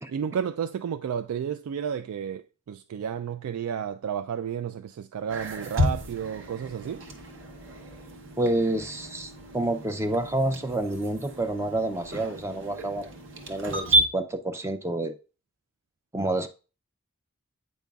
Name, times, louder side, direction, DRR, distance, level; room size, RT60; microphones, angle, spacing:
voice 1, 0.1-7.1, right 8 dB, 80° right, 0.3 m, -32 dB
sound 1, 5.3-14.0, right 1 dB, 55° right, 0.9 m, -31 dB
voice 2, 8.4-13.1 13.5-15.1 16.1-16.5, right 1 dB, 10° right, 0.4 m, -28 dB
8.3 x 5.2 x 2.3 m
head